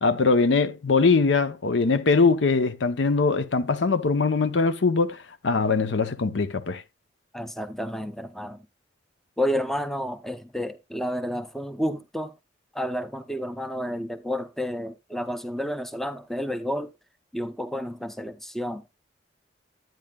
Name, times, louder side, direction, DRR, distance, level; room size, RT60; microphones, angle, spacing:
voice 1, 0.0-6.8, left 4 dB, 75° left, 0.7 m, -22 dB
voice 2, 7.3-8.6 9.4-12.3 12.7-16.9 17.3-18.8, equal, ahead, 0.5 m, -30 dB
10.5 x 9.1 x 2.2 m
head